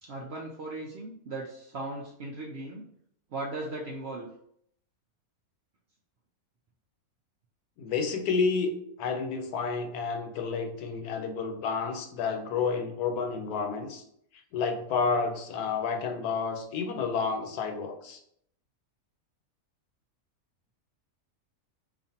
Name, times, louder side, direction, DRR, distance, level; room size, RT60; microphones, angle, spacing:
voice 1, 0.0-2.8 3.3-4.3, right 2 dB, 65° right, -1 dB, 0.6 m, -37 dB
voice 2, 7.8-8.7 9.0-14.0 14.5-18.2, left 5 dB, 80° left, 5 dB, 1.2 m, -30 dB
5.0 x 2.5 x 2.7 m, 0.69 s
omnidirectional pair, 1.6 m